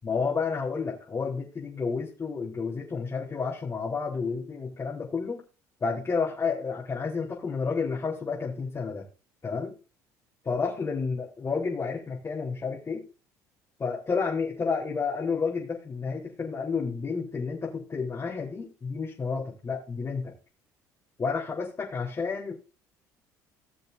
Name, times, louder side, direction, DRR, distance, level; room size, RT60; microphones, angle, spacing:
voice 1, 0.0-5.4 5.8-9.1 9.4-9.8 10.5-13.1 13.8-20.3 21.2-22.5, left 5 dB, 35° left, -5 dB, 3.7 m, -30 dB
18.5 x 6.8 x 2.7 m, 0.34 s
hypercardioid pair, 70°, 9 cm